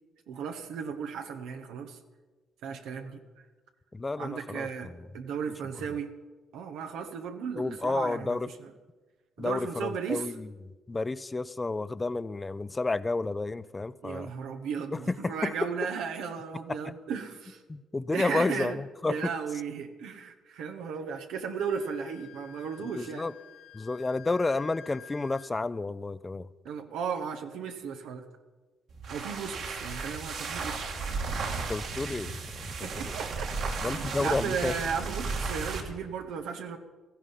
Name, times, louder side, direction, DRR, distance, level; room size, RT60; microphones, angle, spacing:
voice 1, 0.3-2.0 2.6-3.5 4.2-4.9 5.1-6.1 6.5-8.7 9.4-10.3 14.0-17.6 18.1-18.8 19.1-23.2 26.6-28.2 29.1-30.8 32.8-36.8, right 6 dB, 90° right, 1.2 m, -35 dB
voice 2, 3.9-5.1 7.6-8.5 9.4-10.5 10.9-14.3 14.9-15.7 16.8-16.9 17.7-19.3 22.9-23.3 23.7-26.5 31.6-33.1 33.8-34.7, left 3 dB, 20° left, 0.6 m, -31 dB
Wind instrument woodwind instrument, 21.5-25.5, left 8 dB, 70° left, 3.7 m, -51 dB
sound 1, 28.9-35.9, right 4 dB, 75° right, 2.6 m, -34 dB
16.5 x 14.5 x 5.7 m
cardioid pair, 90°, 0 cm